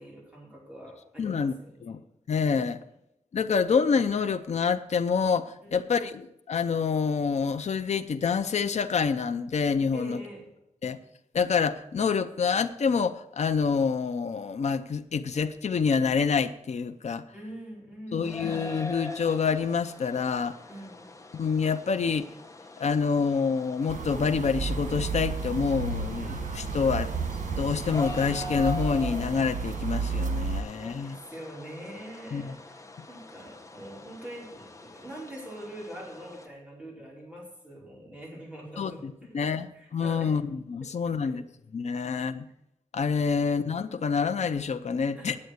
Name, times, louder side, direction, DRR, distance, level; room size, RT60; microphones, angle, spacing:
voice 1, 0.0-1.9 5.6-5.9 9.9-10.5 17.3-18.4 20.7-21.1 30.8-39.4 39.7-40.3 41.2-41.4 41.9-42.2 45.1-45.4, right 1 dB, 10° right, -3 dB, 5.0 m, -44 dB
voice 2, 1.2-1.5 1.8-2.0 2.3-2.8 3.3-10.2 10.8-11.0 11.3-17.2 18.1-20.6 21.3-22.3 22.8-27.1 27.6-31.2 32.3-32.5 38.8-41.4 41.7-42.5 42.9-45.4, left 5 dB, 60° left, 8 dB, 0.7 m, -27 dB
sound 1, 18.2-36.5, left 2 dB, 25° left, 1.1 m, -43 dB
sound 2, 23.9-30.6, right 4 dB, 85° right, 1.5 m, -32 dB
9.7 x 7.7 x 7.9 m, 0.81 s
wide cardioid pair, 100°, 13 cm